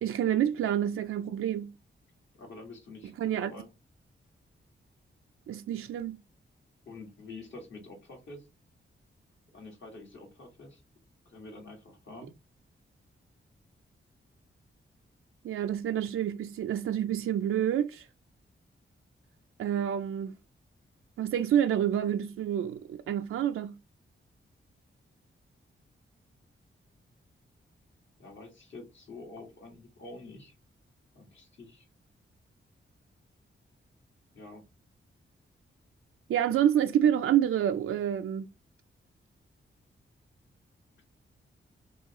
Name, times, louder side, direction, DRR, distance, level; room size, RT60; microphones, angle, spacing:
voice 1, 0.0-1.7 3.0-3.5 5.5-6.2 15.4-18.1 19.6-20.3 21.2-23.8 36.3-38.5, right 10 dB, 90° right, 0.4 m, -28 dB
voice 2, 2.3-3.7 6.9-8.5 9.5-10.8 11.3-12.3 28.2-30.5 31.1-31.9 34.3-34.6, left 2 dB, 65° left, 2.2 m, -47 dB
6.2 x 2.4 x 3.0 m
wide cardioid pair, 125°, 21 cm